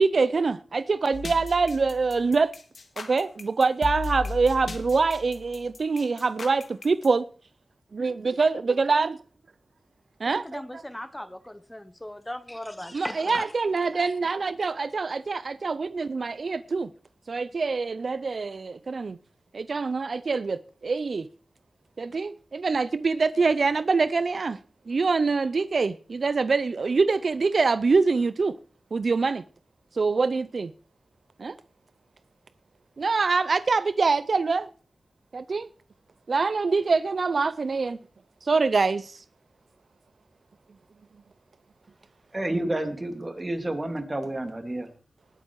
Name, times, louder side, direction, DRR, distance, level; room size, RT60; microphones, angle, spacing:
voice 1, 0.0-2.5 3.0-7.2 7.9-9.2 10.2-10.8 12.9-16.9 17.3-19.2 19.5-21.3 22.0-24.6 24.9-28.6 28.9-29.4 29.9-30.7 31.4-31.5 33.0-34.7 35.3-35.7 36.3-38.0 38.4-39.2, right 4 dB, 65° right, 0.5 m, -25 dB
sound 1, 1.1-7.1, left 4 dB, 75° left, 1.9 m, -36 dB
voice 2, 10.4-13.5, left 1 dB, 15° left, 0.8 m, -37 dB
voice 3, 42.3-44.9, right 1 dB, 30° right, 2.5 m, -30 dB
19.0 x 7.4 x 4.6 m
cardioid pair, 65°, 0 cm